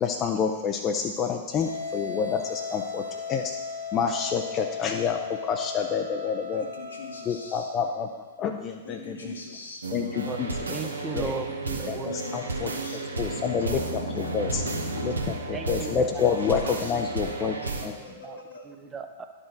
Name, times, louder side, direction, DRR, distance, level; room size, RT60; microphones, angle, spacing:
voice 1, 0.0-3.5 3.9-6.6 7.3-8.1 8.4-9.3 9.9-10.5 11.1-11.3 11.9-12.0 12.3-12.7 13.2-13.8 14.2-14.6 15.0-15.1 15.5-17.5 17.8-17.9, left 6 dB, 30° left, 4 dB, 0.5 m, -28 dB
sound 1, 1.6-8.5, left 5 dB, 60° left, 1.5 m, -37 dB
voice 2, 6.5-7.7 8.8-11.1 12.0-15.7 16.1-18.7, left 1 dB, 75° left, 1 dB, 1.4 m, -39 dB
sound 2, 9.8-17.9, right 3 dB, 80° right, 0.9 m, -33 dB
voice 3, 10.2-12.2 15.5-17.1 17.6-19.2, right 5 dB, 15° right, 6 dB, 0.6 m, -38 dB
11.0 x 5.0 x 3.9 m, 1.3 s
figure-of-eight pair, 105°, 0 cm